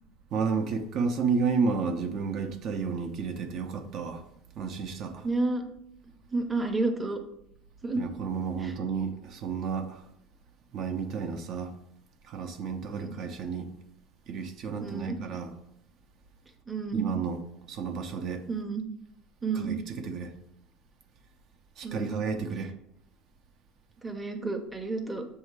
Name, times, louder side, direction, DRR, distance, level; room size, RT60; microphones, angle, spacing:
voice 1, 0.3-4.2 4.6-5.3 8.0-10.1 10.7-11.7 12.3-13.7 14.3-15.5 16.9-17.4 17.7-18.5 19.5-20.3 21.8-22.7, right 5 dB, 50° right, 0.6 m, -31 dB
voice 2, 5.2-5.6 6.3-7.2 7.8-8.0 8.6-8.8 12.8-13.2 14.8-15.2 16.7-17.1 18.5-18.9 19.4-19.8 21.8-22.2 24.0-25.3, right 3 dB, 10° right, 0.7 m, -30 dB
7.2 x 2.8 x 4.7 m
cardioid pair, 130°, 0 cm